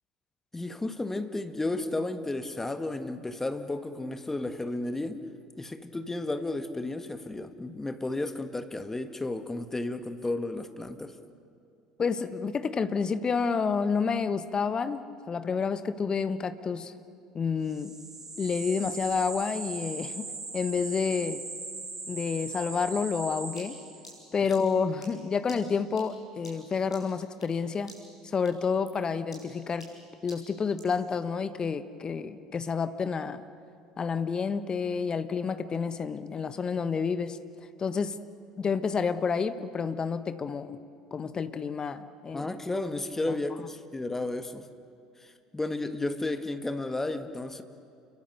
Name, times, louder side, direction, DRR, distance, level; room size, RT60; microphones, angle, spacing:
voice 1, 0.5-5.2 5.6-11.2 42.3-44.6 45.2-47.6, left 2 dB, 10° left, 8 dB, 1.7 m, -33 dB
voice 2, 12.0-15.0 15.3-16.9 17.3-17.9 18.4-20.3 20.5-21.4 22.1-23.8 24.3-27.9 28.2-29.9 30.2-33.4 34.0-37.4 37.8-38.2 38.6-40.8 41.1-42.5, left 5 dB, 30° left, 12 dB, 1.3 m, -29 dB
sound 1, 17.7-24.2, right 3 dB, 20° right, 2.3 m, -39 dB
sound 2, 23.6-27.6 27.9-28.2 28.5-31.0, equal, 85° left, 5.8 m, -51 dB
29.5 x 23.0 x 6.8 m, 2.5 s
figure-of-eight pair, 65°, 3 cm